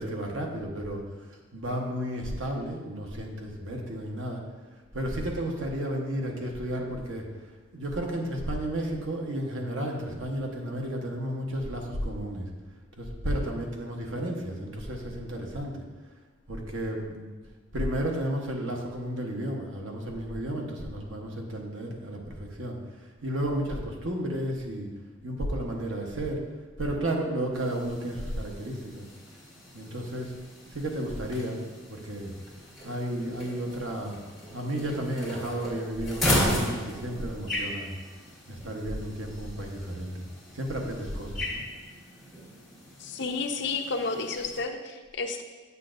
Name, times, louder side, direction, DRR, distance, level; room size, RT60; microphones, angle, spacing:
voice 1, 0.0-4.4 4.9-12.5 13.0-15.8 16.5-17.3 17.7-24.9 25.2-26.4 26.8-29.0 29.7-30.3 30.7-31.6 31.9-32.3 32.8-34.2 34.5-37.9 38.5-40.2 40.5-41.6, right 1 dB, 80° right, 1 dB, 1.0 m, -32 dB
sound 1, 27.5-44.6, left 1 dB, ahead, 2.2 m, -36 dB
voice 2, 43.0-45.4, left 4 dB, 60° left, 5 dB, 0.6 m, -31 dB
8.2 x 6.6 x 2.5 m, 1.3 s
head